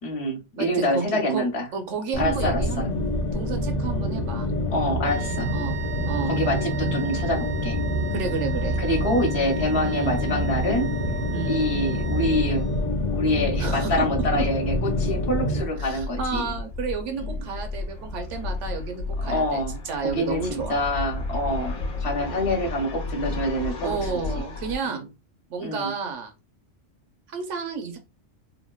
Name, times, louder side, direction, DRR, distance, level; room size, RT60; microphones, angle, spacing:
voice 1, 0.0-1.7 2.2-2.9 4.7-5.5 6.2-7.8 8.8-10.9 11.5-12.7 13.1-16.5 17.1-17.4 19.2-19.8 20.0-24.1 24.8-25.0 25.6-25.9, left 1 dB, 60° left, 2 dB, 1.1 m, -26 dB
voice 2, 0.6-1.4 1.7-2.9 3.3-4.5 5.5-5.8 6.1-6.3 8.1-8.8 9.8-10.2 11.3-11.6 13.6-14.1 14.3-14.4 15.8-20.8 23.8-25.0 25.5-26.3 27.3-28.0, right 5 dB, 75° right, 5 dB, 1.1 m, -31 dB
sound 1, 2.1-15.6, equal, 45° left, 0.6 m, -27 dB
sound 2, 5.0-12.9, right 8 dB, 60° right, 0.8 m, -39 dB
sound 3, 9.2-24.8, left 3 dB, 90° left, 1.1 m, -33 dB
3.5 x 2.2 x 2.3 m, 0.29 s
omnidirectional pair, 1.3 m